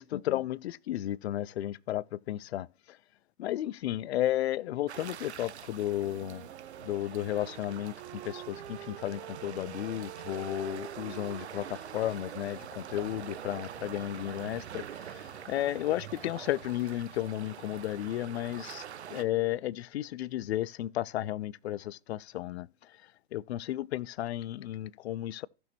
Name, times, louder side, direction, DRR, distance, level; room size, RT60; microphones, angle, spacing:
voice 1, 0.0-2.7 3.4-6.4 6.8-14.8 15.1-15.2 15.5-18.8 19.1-22.7 23.3-25.5, left 13 dB, 70° left, 0.5 m, -33 dB
sound 1, 4.9-19.2, right 9 dB, 80° right, 1.2 m, -45 dB
Wind instrument woodwind instrument, 5.9-14.3, right 12 dB, 55° right, 0.9 m, -48 dB
Livestock farm animals working animals, 11.0-17.0, equal, 5° left, 4.0 m, -56 dB
15.5 x 6.2 x 2.9 m
hypercardioid pair, 110°, 33 cm